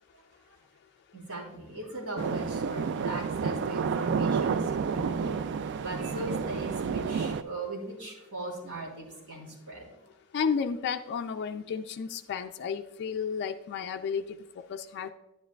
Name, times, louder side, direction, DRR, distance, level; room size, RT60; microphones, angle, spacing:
voice 1, 0.1-0.6 1.1-5.4 5.8-9.9, right 2 dB, 70° right, -3 dB, 3.3 m, -39 dB
sound 1, 2.2-7.4, right 5 dB, 55° right, 0.3 m, -30 dB
voice 2, 10.3-15.1, left 6 dB, 50° left, 6 dB, 0.3 m, -32 dB
10.0 x 9.5 x 2.3 m, 0.93 s
head